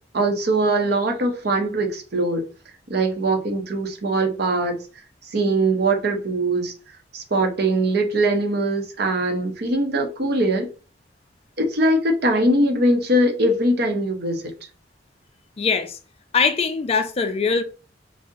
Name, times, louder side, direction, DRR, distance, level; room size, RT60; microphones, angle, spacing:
voice 1, 0.1-2.4 2.9-4.8 5.3-6.7 7.1-10.7 11.6-14.4, right 1 dB, 60° right, 0.6 m, -21 dB
voice 2, 15.6-16.0 16.3-17.6, left 5 dB, 35° left, 0.3 m, -21 dB
2.6 x 2.0 x 3.7 m
head